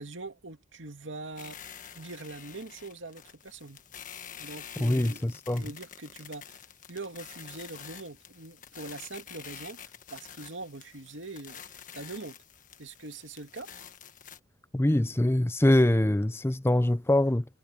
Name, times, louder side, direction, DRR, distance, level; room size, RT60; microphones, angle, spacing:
voice 1, 0.0-1.6 1.9-3.8 4.4-11.6 11.9-12.4 12.8-13.7, right 2 dB, 85° right, 2.4 m, -43 dB
sound 1, 1.4-14.4, left 8 dB, 45° left, 1.5 m, -48 dB
voice 2, 4.8-5.7 14.7-17.5, left 1 dB, 15° left, 0.5 m, -24 dB
head